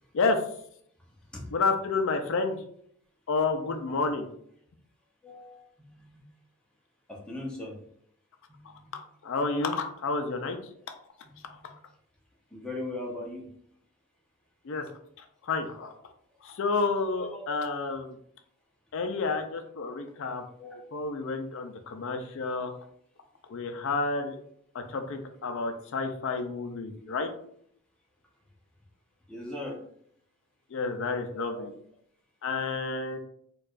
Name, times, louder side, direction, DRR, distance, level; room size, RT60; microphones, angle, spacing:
voice 1, 1.5-2.6 3.3-4.3 9.2-10.6 14.7-14.8 15.5-15.9 16.4-18.1 18.9-20.4 20.9-22.7 23.5-24.4 24.7-27.3 30.7-31.7 32.4-33.2, left 3 dB, 60° left, 5 dB, 0.4 m, -30 dB
voice 2, 5.2-6.2 7.1-7.8 8.5-8.9 11.3-11.6 12.5-13.5 17.1-17.6 20.6-20.8 29.3-29.8 31.3-31.7, left 1 dB, 5° left, -3 dB, 0.7 m, -39 dB
4.5 x 2.3 x 2.4 m, 0.66 s
head